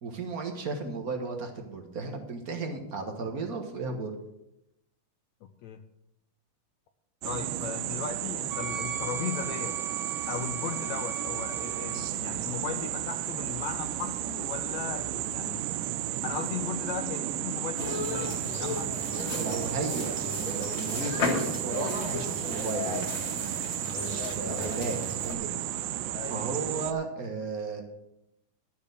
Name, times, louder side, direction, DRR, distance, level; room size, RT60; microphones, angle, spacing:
voice 1, 0.0-4.1 19.3-23.1 24.0-25.5 26.3-27.8, right 3 dB, 55° right, 3 dB, 1.0 m, -34 dB
voice 2, 5.4-5.8 7.2-9.7 10.3-15.6 16.2-19.1 24.5-24.9 26.1-26.5, left 8 dB, 75° left, 6 dB, 1.7 m, -37 dB
sound 1, 7.2-26.9, right 13 dB, 85° right, 2.2 m, -33 dB
Wind instrument woodwind instrument, 8.5-12.1, right 3 dB, 20° right, 0.5 m, -40 dB
sound 2, 17.8-25.3, left 3 dB, 45° left, 2.2 m, -35 dB
12.0 x 6.9 x 6.6 m, 0.85 s
omnidirectional pair, 3.7 m